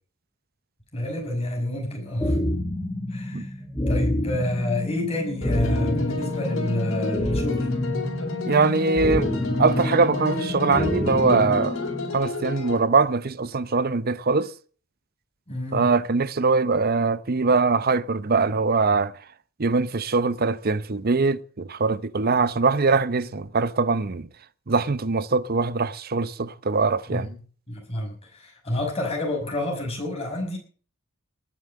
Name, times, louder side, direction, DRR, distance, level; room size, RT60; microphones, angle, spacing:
voice 1, 0.9-2.4 3.1-3.5 3.9-7.7 15.5-15.9 27.1-27.4 27.7-30.6, left 1 dB, 30° left, 5.5 m, -29 dB
sound 1, 2.2-12.2, left 1 dB, 15° left, 2.1 m, -28 dB
sound 2, 5.4-12.8, left 2 dB, 70° left, 4.5 m, -31 dB
voice 2, 8.5-9.3 9.6-11.8 12.1-14.5 15.7-19.1 19.6-24.3 24.7-27.3, right 4 dB, 45° right, 0.7 m, -22 dB
19.5 x 7.2 x 8.5 m
head